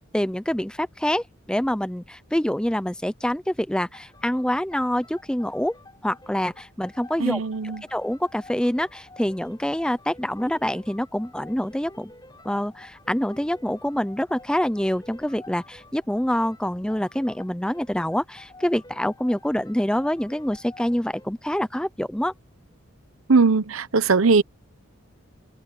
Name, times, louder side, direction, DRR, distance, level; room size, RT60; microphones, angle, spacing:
voice 1, 0.1-5.7 6.0-7.4 7.9-12.1 12.4-22.3, equal, 5° left, 0.5 m, -26 dB
sound 1, 3.9-21.4, left 2 dB, 20° left, 5.9 m, -49 dB
voice 2, 7.2-7.8 23.3-24.4, right 4 dB, 75° right, 0.9 m, -19 dB
open air
head